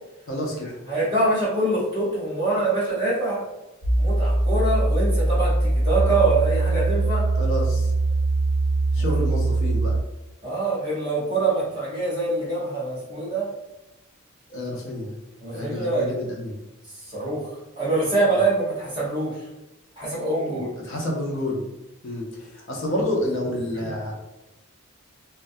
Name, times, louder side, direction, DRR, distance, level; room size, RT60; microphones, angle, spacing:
voice 1, 0.3-0.7 7.4-7.9 8.9-10.0 14.5-15.1 15.5-16.6 20.5-21.6 22.0-24.1, left 1 dB, 65° left, -2 dB, 0.6 m, -29 dB
voice 2, 0.9-3.4 4.0-7.2 8.9-9.1 10.4-13.5 15.4-16.1 16.8-17.5 17.8-19.5 20.0-20.7 23.7-23.9, right 2 dB, 20° right, -8 dB, 0.9 m, -24 dB
sound 1, 3.8-10.0, right 2 dB, 65° right, 0.8 m, -22 dB
2.2 x 2.1 x 2.6 m, 0.97 s
head